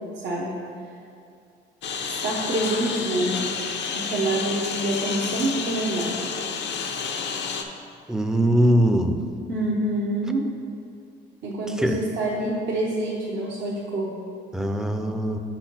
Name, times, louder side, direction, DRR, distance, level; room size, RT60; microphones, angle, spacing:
voice 1, 0.2-0.7 2.2-3.4 3.9-6.2 9.5-10.5 11.4-14.2, right 1 dB, 65° right, -5 dB, 0.9 m, -26 dB
Engine, 1.8-7.6, left 5 dB, 65° left, 0.6 m, -30 dB
voice 2, 8.1-9.2 11.8-12.0 14.5-15.4, equal, 5° right, 5 dB, 0.5 m, -21 dB
5.2 x 4.4 x 5.9 m, 2.4 s
cardioid pair, 90°, 20 cm